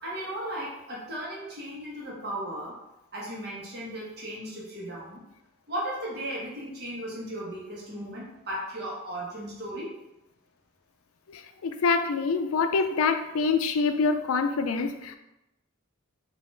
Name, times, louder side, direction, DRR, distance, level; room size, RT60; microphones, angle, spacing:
voice 1, 0.0-2.8 3.1-5.2 5.7-9.9, right 1 dB, 50° right, -5 dB, 1.3 m, -36 dB
voice 2, 11.3-15.2, left 4 dB, 85° left, 8 dB, 0.4 m, -26 dB
4.0 x 2.9 x 3.8 m, 0.91 s
head